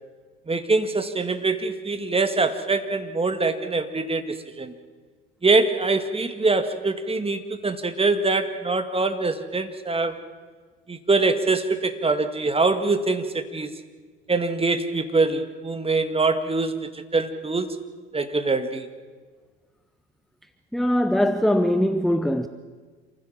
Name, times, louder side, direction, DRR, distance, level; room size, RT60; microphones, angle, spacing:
voice 1, 0.5-4.7 5.4-10.2 10.9-13.7 14.3-17.8 18.1-18.9, right 3 dB, 20° right, 9 dB, 2.0 m, -24 dB
voice 2, 20.7-22.5, equal, ahead, 10 dB, 0.9 m, -21 dB
27.5 x 15.0 x 7.5 m, 1.5 s
figure-of-eight pair, 60°, 31 cm